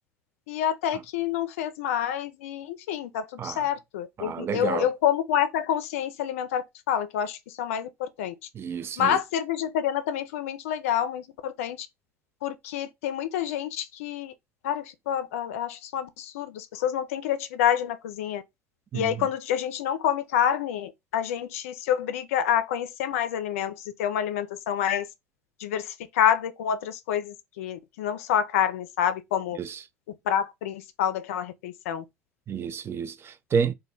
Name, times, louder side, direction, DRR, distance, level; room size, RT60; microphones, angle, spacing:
voice 1, 0.5-8.3 9.0-11.9 12.4-14.3 14.6-18.4 18.9-25.1 25.6-29.6 30.3-32.0, left 9 dB, 75° left, 0.4 m, -28 dB
voice 2, 4.2-4.9 8.5-9.2 18.9-19.3 29.6-29.8 32.5-33.7, right 7 dB, 30° right, 0.3 m, -30 dB
2.2 x 2.1 x 3.8 m
hypercardioid pair, 70°, 8 cm